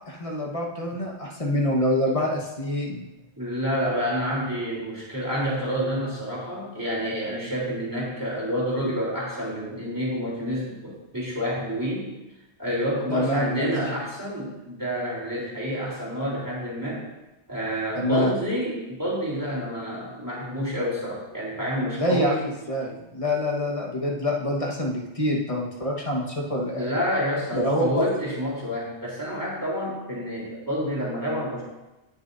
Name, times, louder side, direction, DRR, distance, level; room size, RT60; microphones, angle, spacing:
voice 1, 0.1-3.0 13.1-13.7 17.9-18.3 22.0-26.9 27.5-28.1, left 1 dB, 30° left, -1 dB, 1.5 m, -26 dB
voice 2, 3.4-12.1 12.6-17.0 17.5-22.4 26.7-31.6, equal, 15° right, -6 dB, 3.7 m, -28 dB
17.5 x 6.8 x 2.7 m, 1.0 s
omnidirectional pair, 1.2 m